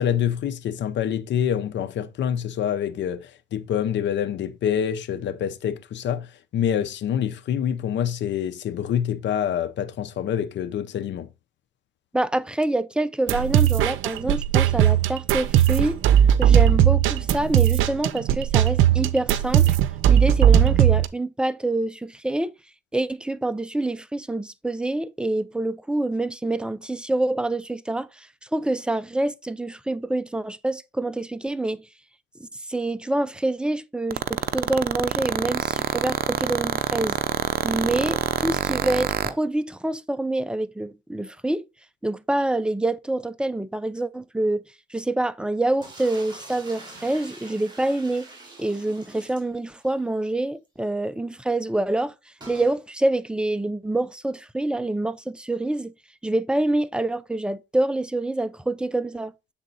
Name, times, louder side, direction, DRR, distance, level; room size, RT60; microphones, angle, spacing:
voice 1, 0.0-6.3 6.5-11.3, left 9 dB, 65° left, 0.8 m, -26 dB
voice 2, 12.1-16.0 16.4-19.8 20.1-22.5 22.9-31.8 32.4-37.2 37.6-41.6 42.0-44.6 44.9-48.3 48.6-52.1 52.5-55.9 56.2-59.3, right 2 dB, 5° right, 0.6 m, -26 dB
sound 1, 13.3-21.1, right 10 dB, 85° right, 0.6 m, -18 dB
sound 2, 34.1-39.3, right 9 dB, 50° right, 0.7 m, -24 dB
sound 3, 45.8-50.0 50.3-50.4 50.6-50.7 52.4-52.8, right 2 dB, 20° right, 3.3 m, -44 dB
7.7 x 3.7 x 4.1 m
cardioid pair, 90°, 20 cm